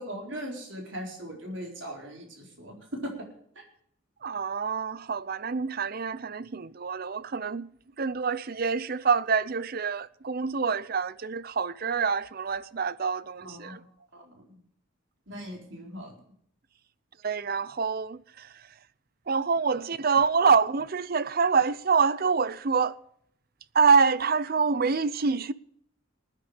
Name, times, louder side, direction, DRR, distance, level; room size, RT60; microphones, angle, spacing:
voice 1, 0.0-3.2 13.4-13.8 14.1-14.6 15.3-16.2, equal, 65° right, 4.3 m, -39 dB
voice 2, 4.2-7.7 8.0-13.8 17.2-18.5 19.3-22.9 23.7-25.5, right 5 dB, 45° right, 0.6 m, -26 dB
19.5 x 9.9 x 5.0 m
head